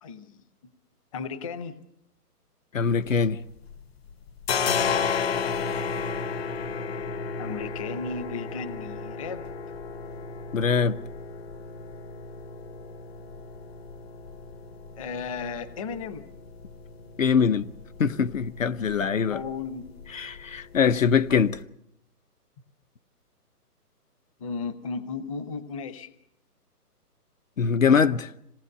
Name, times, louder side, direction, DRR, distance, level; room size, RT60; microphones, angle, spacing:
voice 1, 0.0-0.4 1.1-1.8 7.4-9.5 15.0-16.3 19.3-19.9 24.4-26.1, left 5 dB, 20° left, 1.0 m, -35 dB
voice 2, 2.7-3.4 10.5-11.0 17.2-17.7 18.0-19.4 20.1-21.6 27.6-28.3, left 6 dB, 55° left, 0.9 m, -22 dB
sound 1, 2.9-3.8 4.1-21.6, left 6 dB, 40° left, 1.3 m, -34 dB
26.5 x 19.0 x 6.8 m
hypercardioid pair, 160°, 47 cm